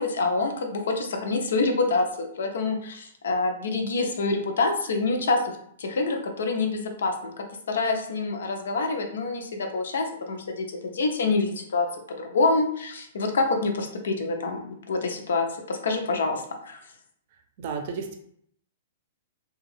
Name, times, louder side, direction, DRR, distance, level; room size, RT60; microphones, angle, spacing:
voice 1, 0.0-5.5 5.8-11.9 12.2-16.8, left 3 dB, 85° left, 3 dB, 0.6 m, -26 dB
voice 2, 17.6-18.2, right 5 dB, 45° right, 5 dB, 0.5 m, -32 dB
2.6 x 2.4 x 3.2 m, 0.67 s
hypercardioid pair, 160°, 0 cm